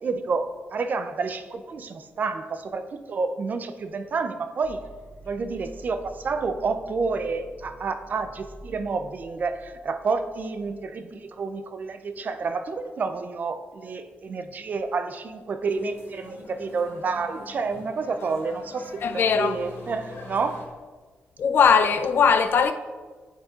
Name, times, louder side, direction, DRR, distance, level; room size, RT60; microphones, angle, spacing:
voice 1, 0.0-4.8 5.3-20.7, right 4 dB, 40° right, 0.3 m, -29 dB
sound 1, 4.6-10.6, right 2 dB, 80° right, 1.4 m, -47 dB
sound 2, 15.6-20.6, left 3 dB, 85° left, 1.1 m, -44 dB
voice 2, 19.0-19.6 21.4-22.7, left 6 dB, 55° left, 0.3 m, -19 dB
8.8 x 5.1 x 2.4 m
wide cardioid pair, 175°, 4 cm